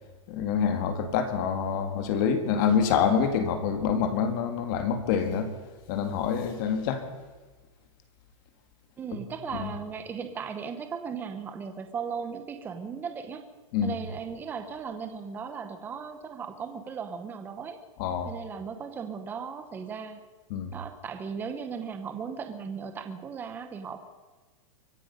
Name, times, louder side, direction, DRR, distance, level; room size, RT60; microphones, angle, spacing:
voice 1, 0.3-5.5 5.9-7.0 9.1-9.2 9.5-9.7 13.7-13.9 18.0-18.3 20.5-20.7, left 7 dB, 40° left, 8 dB, 1.8 m, -26 dB
voice 2, 9.0-13.4 13.8-17.8 18.2-20.2 20.7-24.0, right 6 dB, 10° right, 8 dB, 0.9 m, -37 dB
24.0 x 10.0 x 5.4 m, 1.3 s
supercardioid pair, 170°, 17 cm